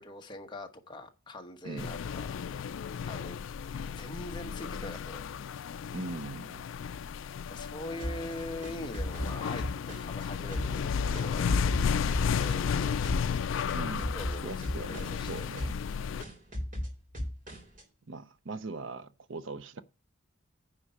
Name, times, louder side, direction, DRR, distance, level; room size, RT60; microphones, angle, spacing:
voice 1, 0.0-2.8 3.1-3.4 4.0-5.3 7.5-11.9 12.3-13.0 14.1-14.5 15.1-15.5, left 1 dB, 25° left, 1.1 m, -43 dB
sound 1, 1.8-16.2, left 6 dB, 75° left, 0.4 m, -33 dB
voice 2, 5.9-6.7 13.7-14.2 14.4-15.7 18.1-19.8, right 3 dB, 70° right, 0.7 m, -40 dB
sound 2, 8.0-10.2 10.5-12.8 13.0-13.4 13.7-15.3 15.6-15.9 16.2-17.8, equal, 40° right, 3.1 m, -37 dB
9.9 x 4.3 x 5.6 m
head